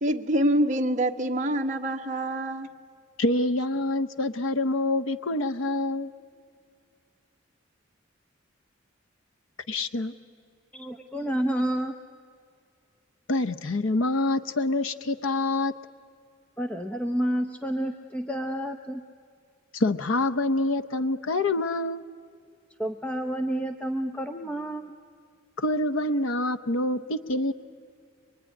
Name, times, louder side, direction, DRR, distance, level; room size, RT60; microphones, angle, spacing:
voice 1, 0.0-2.7, right 1 dB, 40° right, 3 dB, 1.2 m, -25 dB
voice 2, 3.2-6.1 9.7-10.1 13.3-15.7 19.7-22.0 25.6-27.5, left 2 dB, 85° left, 11 dB, 0.7 m, -26 dB
voice 3, 10.7-11.9 16.6-19.0 22.8-24.9, right 1 dB, 5° left, 5 dB, 0.7 m, -29 dB
23.5 x 23.5 x 9.8 m, 2.3 s
head